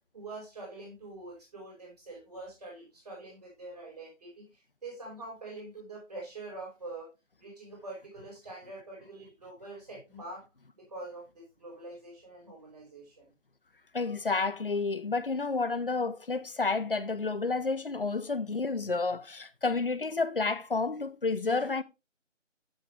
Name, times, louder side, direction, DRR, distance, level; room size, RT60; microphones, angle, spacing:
voice 1, 0.1-7.1 7.4-10.4 10.8-13.3, right 2 dB, 30° right, 4.7 m, -45 dB
voice 2, 13.9-21.8, left 3 dB, 45° left, 0.6 m, -30 dB
7.6 x 7.4 x 3.2 m
figure-of-eight pair, 170°, 38 cm